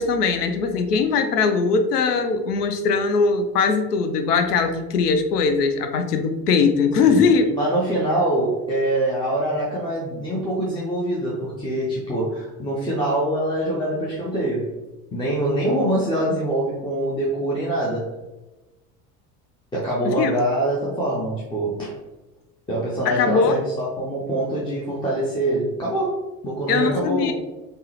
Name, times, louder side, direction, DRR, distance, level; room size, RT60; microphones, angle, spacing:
voice 1, 0.0-7.4 20.0-20.3 23.1-23.6 26.7-27.3, left 5 dB, 75° left, 7 dB, 0.5 m, -20 dB
voice 2, 7.5-14.7 15.1-18.1 19.7-21.9 22.7-27.3, right 1 dB, 10° left, -6 dB, 0.5 m, -24 dB
3.5 x 2.1 x 2.7 m, 1.1 s
figure-of-eight pair, 65°, 48 cm